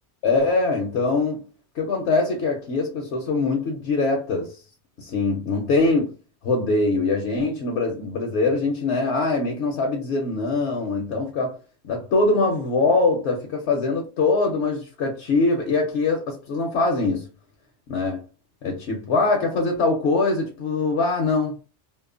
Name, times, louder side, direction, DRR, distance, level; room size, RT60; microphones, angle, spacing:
voice 1, 0.2-1.4 1.7-4.6 5.0-6.2 6.4-17.3 17.9-18.2 18.6-21.7, left 3 dB, 70° left, 0.9 m, -23 dB
2.9 x 2.0 x 2.4 m
omnidirectional pair, 1.2 m